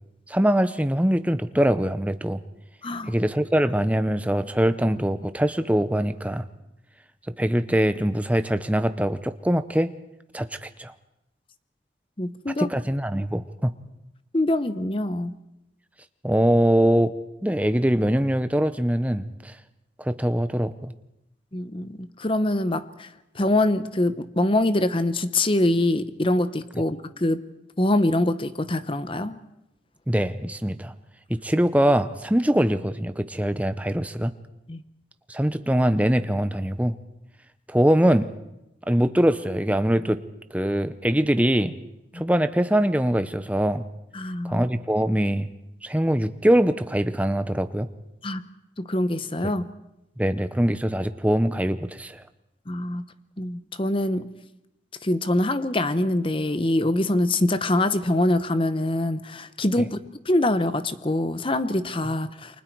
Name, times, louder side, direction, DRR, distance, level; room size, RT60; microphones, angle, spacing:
voice 1, 0.3-2.4 3.1-6.4 7.4-9.9 10.3-10.9 12.6-13.7 16.2-17.1 17.4-19.5 20.0-20.9 30.1-30.9 31.3-34.3 35.3-36.9 37.7-38.3 38.9-40.2 40.5-41.7 42.1-43.8 44.4-45.5 45.8-47.9 50.2-52.2 59.8-59.9, right 1 dB, 10° right, 11 dB, 0.7 m, -23 dB
voice 2, 2.8-3.1 12.2-12.7 14.3-15.3 21.5-23.1 23.3-27.4 27.8-29.4 34.7-34.8 42.1-42.2 44.1-44.6 48.2-48.5 48.8-49.6 52.7-53.0 53.4-54.3 55.0-60.0 60.2-62.6, left 1 dB, 30° left, 12 dB, 0.9 m, -24 dB
29.0 x 24.0 x 4.7 m, 0.88 s
head